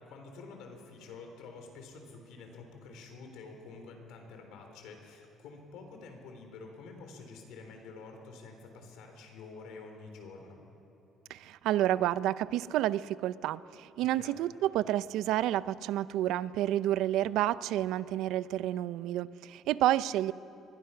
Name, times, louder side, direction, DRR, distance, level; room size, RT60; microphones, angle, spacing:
voice 1, 0.0-10.6 14.0-14.4, left 4 dB, 80° left, 4 dB, 3.9 m, -48 dB
voice 2, 11.3-20.3, right 13 dB, 80° right, 17 dB, 0.5 m, -30 dB
25.5 x 21.0 x 5.8 m, 3.0 s
cardioid pair, 100°, 0 cm